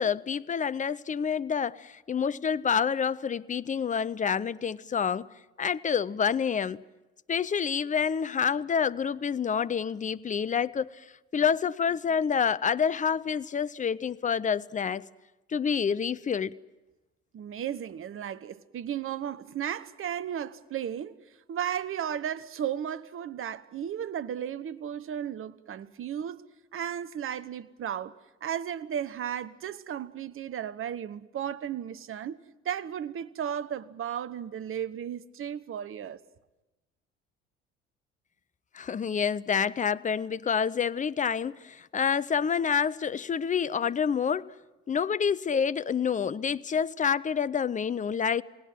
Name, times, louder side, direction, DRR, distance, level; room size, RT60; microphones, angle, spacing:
voice 1, 0.0-5.3 5.6-6.8 7.3-10.9 11.3-15.0 15.5-16.6 38.7-44.5 44.9-48.4, left 7 dB, 25° left, 0.7 m, -28 dB
voice 2, 17.3-21.2 21.5-26.4 26.7-28.1 28.4-32.4 32.6-36.2, right 9 dB, 40° right, 1.1 m, -34 dB
29.0 x 18.0 x 7.7 m
figure-of-eight pair, 55°, 32 cm